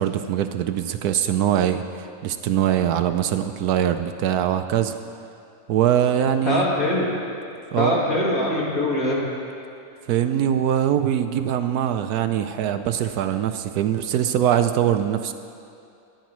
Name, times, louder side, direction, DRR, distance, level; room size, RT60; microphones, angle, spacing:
voice 1, 0.0-4.9 5.7-6.7 7.7-8.0 10.1-15.3, right 10 dB, 75° right, 9 dB, 1.0 m, -22 dB
voice 2, 6.4-7.0 7.8-9.2, left 1 dB, 55° left, -6 dB, 3.0 m, -22 dB
24.5 x 10.0 x 3.1 m, 2.5 s
omnidirectional pair, 1.7 m